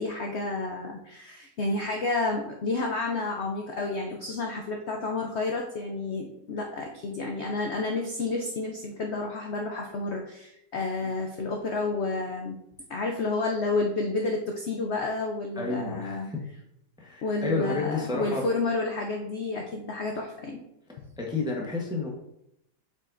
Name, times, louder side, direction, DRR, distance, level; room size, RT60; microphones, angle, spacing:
voice 1, 0.0-12.6 12.9-16.3 17.2-20.6, left 3 dB, 70° left, 1 dB, 0.6 m, -30 dB
voice 2, 15.6-16.4 17.0-18.4 21.2-22.1, left 3 dB, 5° right, -1 dB, 0.6 m, -31 dB
7.7 x 5.2 x 2.6 m, 0.81 s
omnidirectional pair, 2.0 m